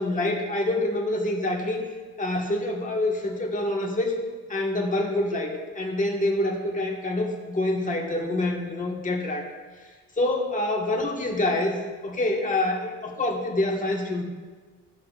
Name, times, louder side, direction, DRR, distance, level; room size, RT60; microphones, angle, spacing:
voice 1, 0.0-1.8 2.2-4.1 4.5-9.5 10.2-14.2, left 1 dB, 25° left, 0 dB, 1.6 m, -26 dB
14.0 x 5.8 x 2.5 m, 1.4 s
cardioid pair, 90°, 30 cm